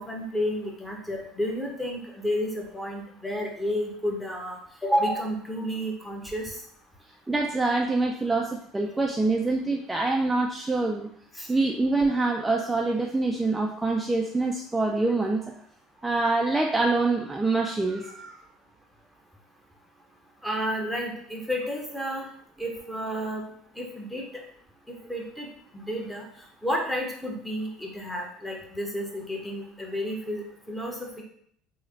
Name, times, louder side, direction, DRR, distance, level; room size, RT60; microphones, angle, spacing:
voice 1, 0.0-6.6 11.3-11.5 20.4-22.3 22.6-23.4 23.7-24.3 24.9-25.5 25.7-26.3 26.6-31.2, equal, 10° left, 0 dB, 0.8 m, -31 dB
voice 2, 7.3-11.1 11.5-15.5 16.0-18.4, right 3 dB, 10° right, 1 dB, 0.3 m, -25 dB
3.1 x 2.1 x 3.7 m, 0.65 s
supercardioid pair, 95°, 0 cm